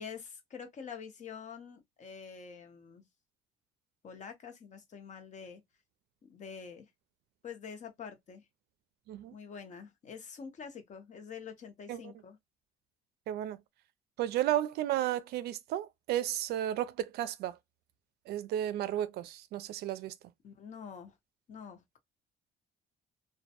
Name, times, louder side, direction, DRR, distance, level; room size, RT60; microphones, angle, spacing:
voice 1, 0.0-3.0 4.0-5.6 6.2-6.9 7.4-8.4 9.3-12.4 20.4-21.1 21.5-22.0, left 6 dB, 45° left, 0.8 m, -46 dB
voice 2, 13.3-13.6 14.2-17.6 18.3-20.1, right 12 dB, 70° right, 0.4 m, -33 dB
2.2 x 2.1 x 2.7 m
cardioid pair, 110°, 17 cm